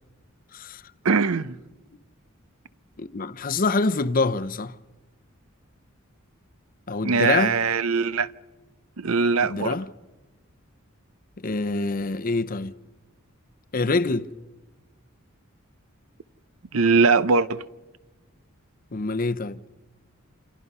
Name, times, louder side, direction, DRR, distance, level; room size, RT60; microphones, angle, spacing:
voice 1, 1.0-1.6 7.0-8.3 9.0-9.8 16.7-17.6, right 4 dB, 85° right, 0.7 m, -21 dB
voice 2, 3.0-4.7 6.9-7.5 9.5-9.9 11.4-12.7 13.7-14.3 18.9-19.6, left 3 dB, 40° left, 0.7 m, -25 dB
28.5 x 28.0 x 5.5 m
head